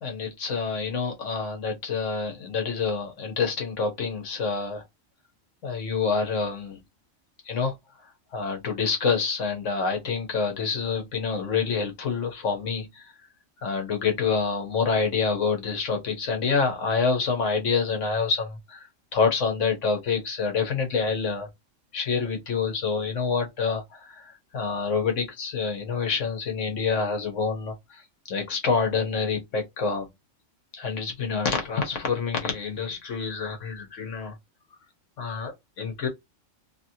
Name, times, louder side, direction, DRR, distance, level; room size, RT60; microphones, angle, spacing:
voice 1, 0.0-4.8 5.6-6.8 7.5-7.7 8.3-13.0 13.6-21.5 21.9-28.0 28.3-30.1 30.7-34.3 35.2-36.1, left 5 dB, 70° left, 1.3 m, -27 dB
2.9 x 2.9 x 2.6 m
omnidirectional pair, 1.3 m